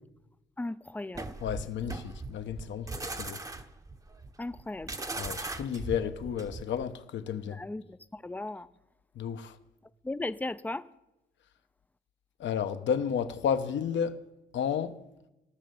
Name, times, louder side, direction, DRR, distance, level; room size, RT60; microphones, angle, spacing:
voice 1, 0.6-1.3 4.4-4.9 7.5-8.7 10.0-10.8, left 2 dB, 10° left, 0.4 m, -36 dB
sound 1, 1.1-6.8, right 2 dB, 15° right, 0.8 m, -39 dB
voice 2, 1.4-2.9 3.2-3.4 5.2-7.6 9.2-9.5 12.4-14.1 14.5-14.9, left 8 dB, 70° left, 1.0 m, -32 dB
16.0 x 6.5 x 7.0 m
cardioid pair, 90°, 20 cm